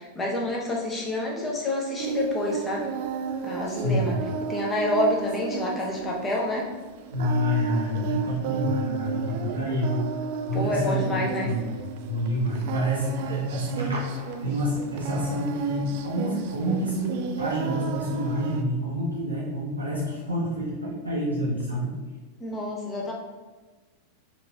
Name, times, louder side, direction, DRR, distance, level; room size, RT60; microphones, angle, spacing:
voice 1, 0.0-2.9 3.4-4.1 4.5-6.7 10.5-11.5 22.4-23.1, left 1 dB, 15° left, -2 dB, 0.9 m, -28 dB
Singing, 2.0-18.6, right 6 dB, 50° right, 0.3 m, -33 dB
voice 2, 3.7-4.3 7.1-10.1 10.5-11.6 12.0-20.7 21.0-21.9, equal, 80° right, -6 dB, 0.8 m, -28 dB
4.2 x 2.9 x 2.8 m, 1.3 s
figure-of-eight pair, 90°, 0 cm